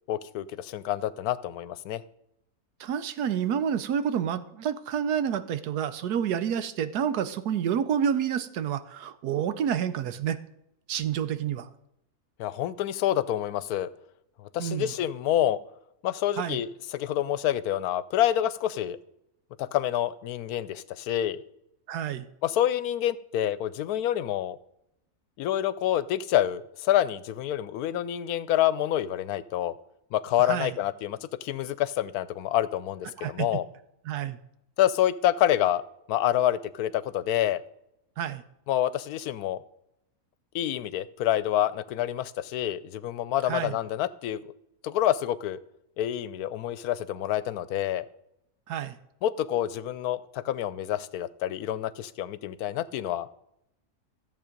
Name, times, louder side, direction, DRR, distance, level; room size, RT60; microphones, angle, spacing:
voice 1, 0.1-2.0 12.4-13.9 14.4-15.6 16.0-19.0 19.6-21.4 22.4-24.6 25.4-29.7 30.1-33.6 34.8-35.8 36.1-37.6 38.7-39.6 40.5-44.5 44.8-45.6 46.0-48.0 49.2-53.3, left 12 dB, 80° left, 17 dB, 1.1 m, -27 dB
voice 2, 2.8-10.4 10.9-11.7 14.6-14.9 16.4-16.6 21.9-22.2 30.4-30.7 33.2-33.5 34.1-34.4 38.2-38.4 43.4-43.8 48.7-49.0, right 8 dB, 85° right, 13 dB, 1.3 m, -29 dB
14.0 x 7.5 x 5.2 m, 0.82 s
omnidirectional pair, 1.6 m